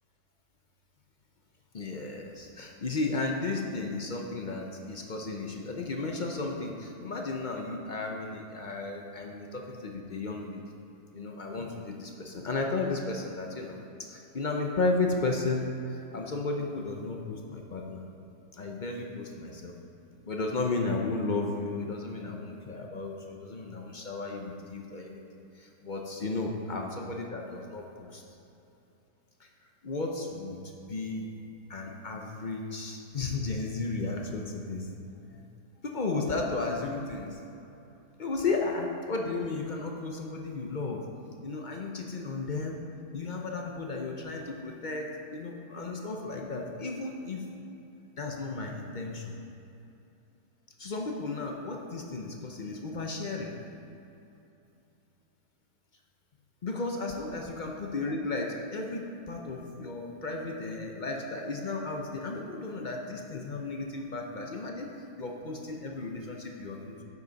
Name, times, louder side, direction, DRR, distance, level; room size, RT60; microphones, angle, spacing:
voice 1, 1.7-10.6 11.1-18.0 18.5-19.7 20.2-25.2 25.5-28.2 29.4-29.5 29.8-30.6 30.9-31.3 31.7-34.9 35.3-35.4 35.8-37.4 38.2-41.0 41.4-42.8 43.1-47.4 48.2-49.3 50.8-53.6 56.6-67.0, left 3 dB, 55° left, 1 dB, 0.5 m, -34 dB
10.5 x 8.0 x 4.0 m, 2.8 s
omnidirectional pair, 1.8 m